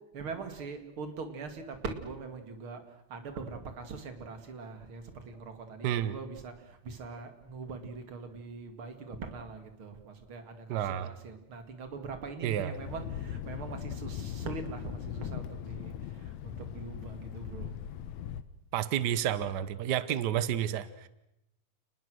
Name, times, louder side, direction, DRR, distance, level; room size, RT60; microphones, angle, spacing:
voice 1, 0.1-17.7, right 4 dB, 45° right, 7 dB, 3.0 m, -42 dB
voice 2, 5.8-6.2 10.7-11.1 12.4-12.7 18.7-21.1, right 10 dB, 85° right, 15 dB, 0.9 m, -30 dB
Thunder, 12.7-18.4, left 9 dB, 75° left, 2.2 m, -39 dB
29.5 x 20.0 x 6.4 m, 0.86 s
omnidirectional pair, 3.3 m